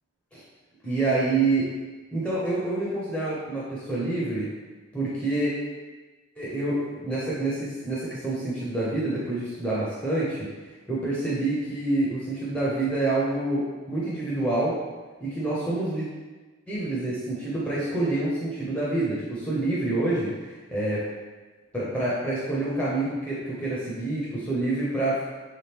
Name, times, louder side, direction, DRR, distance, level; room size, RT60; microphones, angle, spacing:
voice 1, 0.8-1.7 2.1-4.5 4.9-5.5 6.4-10.5 10.9-14.8 15.2-16.1 16.7-21.0 21.7-25.2, right 2 dB, 5° left, -8 dB, 0.5 m, -27 dB
3.5 x 2.9 x 3.4 m, 1.3 s
head